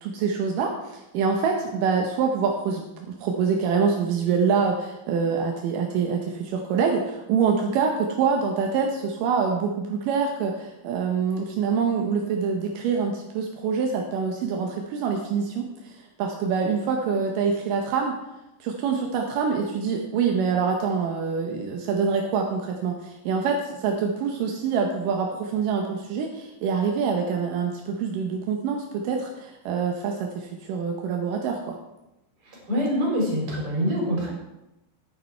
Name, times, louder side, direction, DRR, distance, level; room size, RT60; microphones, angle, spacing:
voice 1, 0.0-18.2 18.6-31.8, right 5 dB, 80° right, 2 dB, 2.0 m, -25 dB
voice 2, 32.4-34.3, equal, 35° right, -2 dB, 3.6 m, -25 dB
9.7 x 9.3 x 4.4 m, 0.94 s
omnidirectional pair, 4.9 m